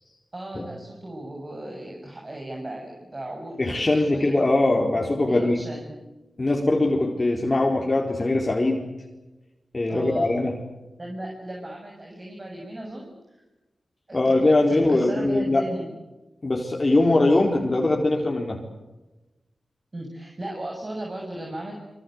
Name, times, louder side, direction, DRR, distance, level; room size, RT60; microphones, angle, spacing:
voice 1, 0.3-4.4 5.3-5.9 9.9-10.3 11.0-13.1 14.1-15.9 19.9-21.7, right 1 dB, 35° right, 0 dB, 7.2 m, -36 dB
voice 2, 3.6-5.6 6.4-8.9 9.7-10.5 14.1-15.6 16.4-18.6, left 2 dB, 40° left, 0 dB, 4.4 m, -21 dB
26.0 x 24.0 x 8.1 m, 1.1 s
cardioid pair, 50°, 0 cm